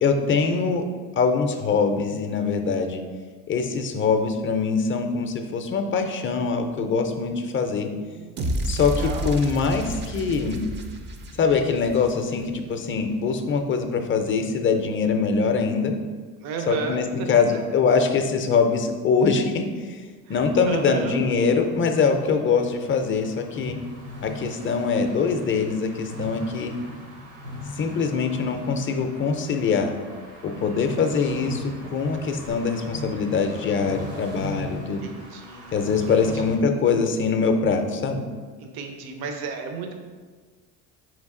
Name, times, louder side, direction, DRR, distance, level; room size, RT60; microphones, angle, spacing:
voice 1, 0.0-0.8 1.2-3.0 3.5-7.9 8.7-10.6 11.4-15.9 16.7-20.0 20.3-23.8 24.2-26.7 27.8-29.9 30.4-35.0 35.7-38.2, left 5 dB, 35° left, 5 dB, 0.4 m, -23 dB
voice 2, 7.8-9.4 16.4-17.6 20.3-21.2 30.5-31.4 34.8-36.6 38.6-39.9, right 5 dB, 70° right, 4 dB, 0.6 m, -35 dB
sound 1, 8.4-12.6, right 1 dB, 30° right, 0.4 m, -31 dB
sound 2, 20.3-36.6, equal, 90° right, 1.2 m, -40 dB
3.9 x 3.2 x 3.6 m, 1.5 s
cardioid pair, 110°, 38 cm